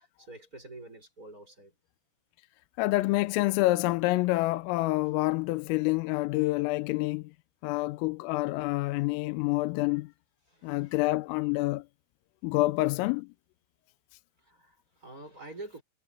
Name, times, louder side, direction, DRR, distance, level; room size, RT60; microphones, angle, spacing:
voice 1, 0.0-1.7 10.5-11.0 14.4-15.8, right 2 dB, 15° right, 6.8 m, -47 dB
voice 2, 2.8-7.3 7.6-10.1 10.6-11.8 12.4-13.3, left 20 dB, 85° left, 3.3 m, -27 dB
omnidirectional pair, 5.9 m